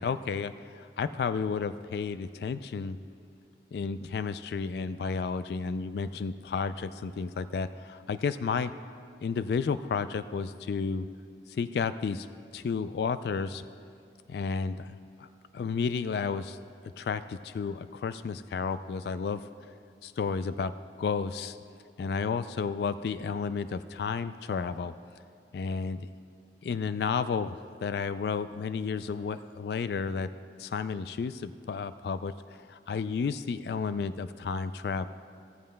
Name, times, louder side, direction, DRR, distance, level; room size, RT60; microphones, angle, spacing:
voice 1, 0.0-3.0 3.7-8.7 9.2-11.1 11.5-12.3 12.5-13.6 14.3-15.3 15.5-16.6 17.0-19.5 20.0-21.6 22.0-24.9 25.5-26.1 26.6-30.3 30.6-35.1, left 5 dB, 65° left, 12 dB, 0.3 m, -32 dB
17.5 x 14.5 x 2.2 m, 2.5 s
head